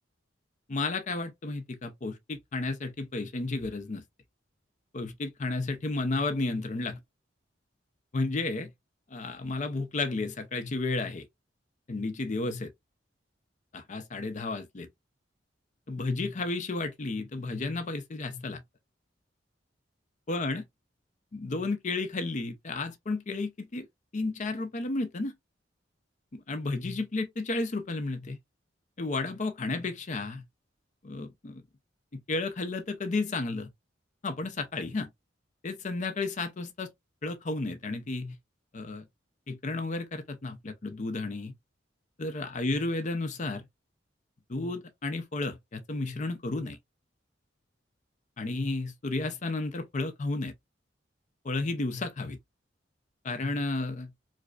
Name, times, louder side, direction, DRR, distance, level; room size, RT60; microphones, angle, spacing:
voice 1, 0.7-4.0 4.9-7.0 8.1-8.7 9.1-11.2 11.9-12.7 13.7-14.9 15.9-18.6 20.3-20.6 21.3-23.9 24.1-25.3 26.3-28.4 29.0-30.4 31.0-31.6 32.1-33.7 34.2-35.1 35.6-36.9 37.2-38.4 38.7-39.0 39.5-41.5 42.2-43.7 44.5-46.8 48.4-50.5 51.4-52.4 53.2-54.1, left 3 dB, 40° left, 0.5 m, -32 dB
4.8 x 2.2 x 2.3 m
head